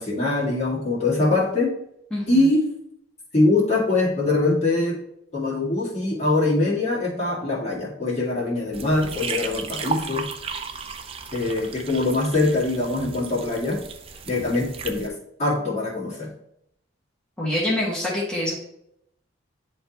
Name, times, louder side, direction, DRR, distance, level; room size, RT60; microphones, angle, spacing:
voice 1, 0.0-1.7 2.3-2.7 3.3-5.0 5.3-10.3 11.3-13.8 14.3-15.1 15.4-16.3, left 2 dB, 35° left, -5 dB, 2.0 m, -23 dB
voice 2, 2.1-2.4 17.4-18.6, left 1 dB, 5° left, -8 dB, 1.4 m, -25 dB
sound 1, 8.7-15.1, right 5 dB, 30° right, 0.5 m, -34 dB
10.0 x 3.4 x 2.9 m, 0.76 s
head